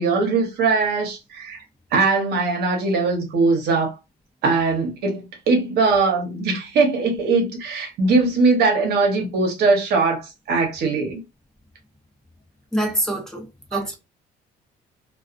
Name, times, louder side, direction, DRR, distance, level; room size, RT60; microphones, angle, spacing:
voice 1, 0.0-1.6 1.9-3.9 4.4-11.2 13.7-13.9, right 4 dB, 70° right, 1.0 m, -21 dB
voice 2, 12.7-13.9, right 1 dB, 5° left, 0.7 m, -25 dB
2.3 x 2.3 x 2.5 m
cardioid pair, 110°, 17 cm